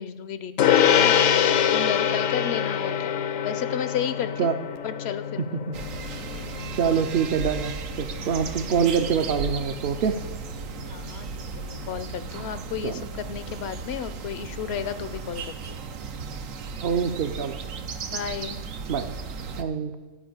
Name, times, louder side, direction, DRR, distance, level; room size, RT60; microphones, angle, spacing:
voice 1, 0.0-1.4 1.7-4.5 4.8-5.5 10.9-15.8 18.1-18.6, left 8 dB, 65° left, 12 dB, 0.7 m, -33 dB
Gong, 0.6-10.3, left 9 dB, 80° left, 1.1 m, -25 dB
sound 1, 5.7-19.6, right 5 dB, 85° right, 1.2 m, -35 dB
voice 2, 6.7-7.7 8.0-10.2 12.8-13.0 16.8-17.6 18.9-19.1 19.6-19.9, right 7 dB, 60° right, 6 dB, 0.7 m, -25 dB
12.5 x 5.1 x 8.6 m, 1.3 s
omnidirectional pair, 1.3 m